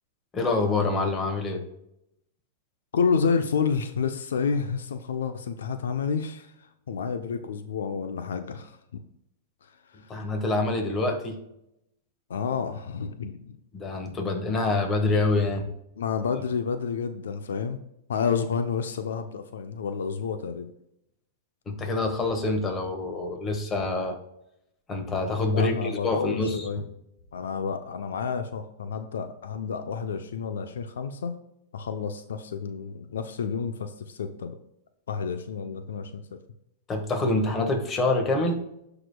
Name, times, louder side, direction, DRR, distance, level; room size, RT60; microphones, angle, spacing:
voice 1, 0.3-1.6 10.1-11.4 13.7-15.7 21.6-24.2 24.9-26.7 36.9-38.6, left 2 dB, 20° left, 4 dB, 1.5 m, -26 dB
voice 2, 2.9-6.5 6.9-8.8 9.6-10.0 12.3-13.6 16.0-17.8 18.1-20.7 25.5-26.9 27.3-31.3 31.7-34.6 35.1-36.4, left 6 dB, 85° left, 9 dB, 0.6 m, -30 dB
12.5 x 5.0 x 2.3 m, 0.82 s
hypercardioid pair, 135°, 0 cm